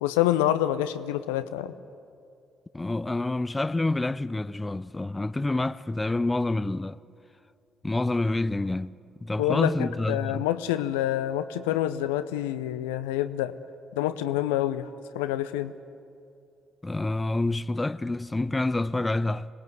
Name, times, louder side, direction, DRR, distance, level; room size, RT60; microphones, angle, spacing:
voice 1, 0.0-1.7 9.4-13.5 13.9-14.9 15.1-15.7, left 13 dB, 75° left, 0.7 m, -27 dB
voice 2, 2.7-7.0 7.8-8.9 9.2-10.5 16.8-19.5, left 2 dB, 20° left, 0.6 m, -27 dB
26.0 x 19.0 x 8.1 m
figure-of-eight pair, 45°, 0 cm